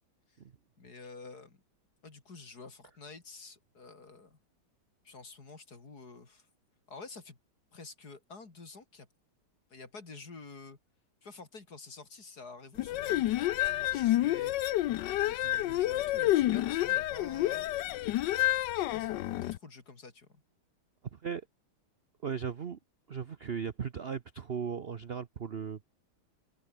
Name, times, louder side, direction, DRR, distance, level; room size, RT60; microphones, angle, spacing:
voice 1, 0.8-1.6 2.0-4.4 5.0-6.5 6.9-7.4 7.7-9.1 9.7-10.8 11.2-14.5 15.2-17.7 18.7-20.4, left 4 dB, 45° left, 3.8 m, -49 dB
sound 1, 12.8-19.6, left 15 dB, 70° left, 1.1 m, -29 dB
voice 2, 21.1-21.5 22.2-22.8 23.1-25.9, right 7 dB, 60° right, 0.6 m, -37 dB
open air
omnidirectional pair, 2.3 m